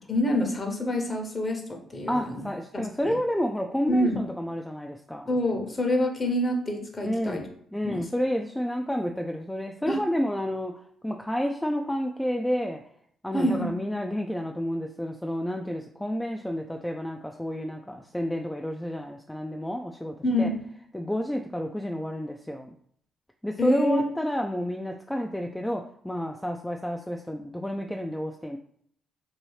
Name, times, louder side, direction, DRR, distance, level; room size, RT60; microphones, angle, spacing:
voice 1, 0.1-2.4 2.7-3.1 3.9-4.2 5.3-7.4 7.8-8.0 9.9-10.0 13.3-13.7 20.2-20.6 23.6-24.1, left 1 dB, 35° left, 3 dB, 0.9 m, -26 dB
voice 2, 2.1-5.3 7.0-12.8 13.2-20.5 20.9-22.7 23.4-28.6, equal, 10° left, 2 dB, 0.3 m, -30 dB
2.7 x 2.7 x 3.1 m, 0.64 s
hypercardioid pair, 45°, 0 cm